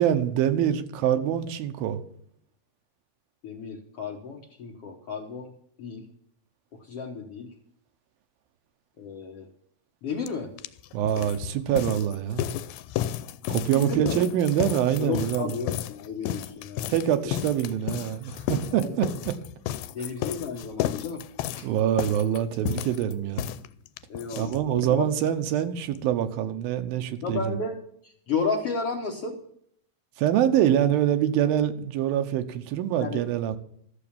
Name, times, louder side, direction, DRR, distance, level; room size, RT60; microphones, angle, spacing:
voice 1, 0.0-2.0 10.9-12.5 13.5-15.5 16.9-19.3 21.6-23.5 24.4-27.6 30.2-33.6, right 10 dB, 80° right, 8 dB, 2.7 m, -25 dB
voice 2, 3.4-5.5 5.8-6.0 6.8-7.5 9.0-9.5 10.0-10.5 13.7-14.2 15.0-17.0 18.8-19.0 19.9-21.2 21.5-21.7 24.1-25.1 27.2-27.8 28.0-29.4 33.0-33.2, left 5 dB, 65° left, 1 dB, 1.5 m, -32 dB
sound 1, 10.3-10.4 10.6-25.0 25.3-25.4 25.6-25.7 26.0-26.1, left 12 dB, 90° left, 2.5 m, -33 dB
13.5 x 7.0 x 7.1 m, 0.67 s
omnidirectional pair, 4.2 m